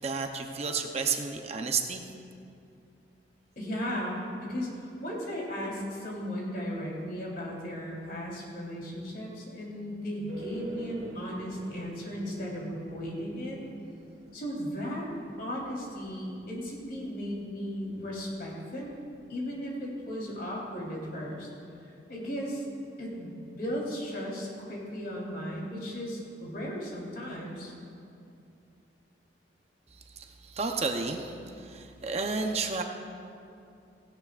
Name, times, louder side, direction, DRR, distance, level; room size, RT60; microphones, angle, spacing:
voice 1, 0.0-2.1 30.1-32.8, right 4 dB, 35° right, 4 dB, 0.7 m, -32 dB
voice 2, 3.6-13.6 14.3-15.0 15.4-18.9 19.3-21.5 21.8-22.6 23.0-27.7, equal, 55° left, -4 dB, 3.6 m, -36 dB
sound 1, 10.3-20.4 20.6-20.8 21.0-21.2, right 2 dB, 85° right, 2.4 m, -48 dB
17.5 x 16.5 x 2.5 m, 2.5 s
head